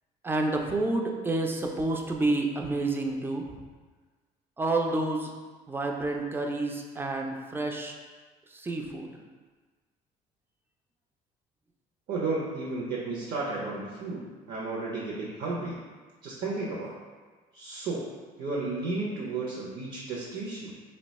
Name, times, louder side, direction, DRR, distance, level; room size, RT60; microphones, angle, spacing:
voice 1, 0.2-3.5 4.6-5.3 5.7-7.9 8.5-9.1, right 2 dB, 15° right, 2 dB, 0.3 m, -29 dB
voice 2, 12.1-15.8 16.2-16.9 17.5-20.7, right 3 dB, 60° right, -4 dB, 0.6 m, -33 dB
2.7 x 2.2 x 4.0 m, 1.4 s
cardioid pair, 110°, 17 cm